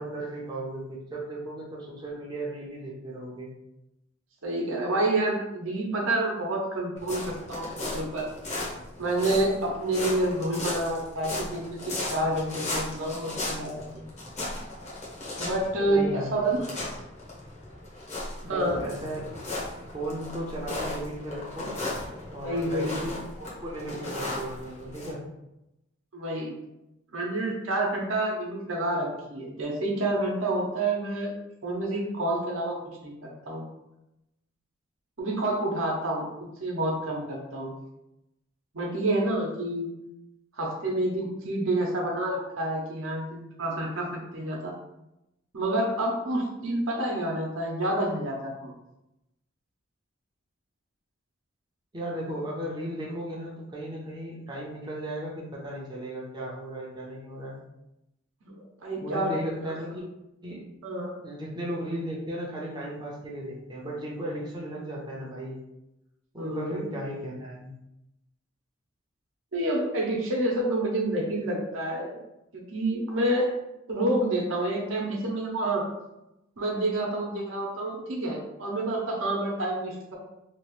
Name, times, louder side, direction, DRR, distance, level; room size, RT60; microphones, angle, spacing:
voice 1, 0.0-3.5 15.2-15.4 15.9-16.7 18.4-19.3 19.9-21.8 22.3-25.2 51.9-57.6 59.0-60.1 60.4-60.7 61.2-65.6 66.3-67.7, right 1 dB, 20° right, -5 dB, 0.5 m, -36 dB
voice 2, 4.4-7.7 7.9-8.3 9.0-14.0 15.4-16.7 18.5-18.8 22.4-22.9 26.1-26.5 27.1-31.3 31.6-32.8 33.0-33.7 35.2-36.3 36.6-37.7 38.7-39.9 40.6-44.7 45.5-48.7 58.4-59.3 60.8-61.1 66.4-66.8 69.5-72.2 72.5-73.5 73.9-75.8 76.6-80.1, right 1 dB, 80° right, -1 dB, 0.8 m, -28 dB
sound 1, 7.0-25.1, left 2 dB, 35° left, 0.8 m, -36 dB
2.9 x 2.4 x 3.1 m, 0.90 s
head